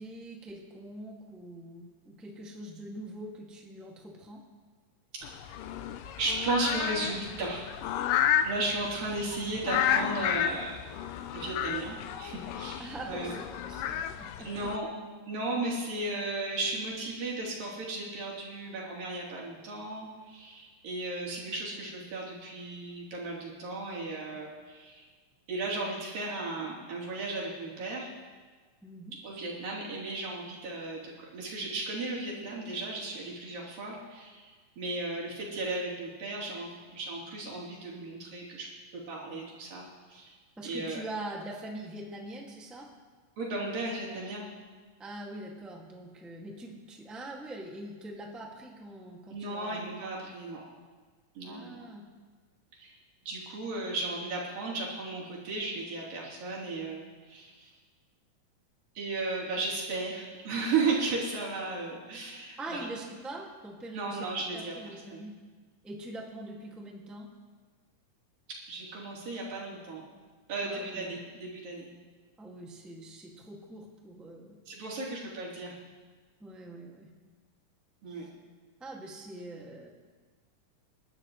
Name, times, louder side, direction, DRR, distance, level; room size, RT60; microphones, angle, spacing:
voice 1, 0.0-4.4 12.8-14.7 28.8-29.2 40.6-42.9 45.0-50.3 51.4-52.1 62.6-64.3 64.5-65.3 65.8-67.3 70.6-71.2 72.4-74.6 76.4-77.1 78.1-78.3 78.8-79.9, right 1 dB, ahead, -2 dB, 1.2 m, -43 dB
sound 1, 5.2-14.8, left 10 dB, 85° left, 2.4 m, -32 dB
voice 2, 6.2-7.7 8.4-10.8 11.3-13.4 14.4-14.9 15.3-25.1 25.5-28.1 29.2-38.7 38.9-40.4 40.6-41.0 43.4-44.5 49.3-50.6 51.4-51.8 52.8-53.0 53.2-57.7 59.0-62.8 63.9-65.3 68.7-70.1 70.5-71.9 74.7-75.7 78.0-78.3, right 2 dB, 90° right, -5 dB, 5.3 m, -35 dB
29.5 x 12.5 x 3.2 m, 1.4 s
omnidirectional pair, 3.8 m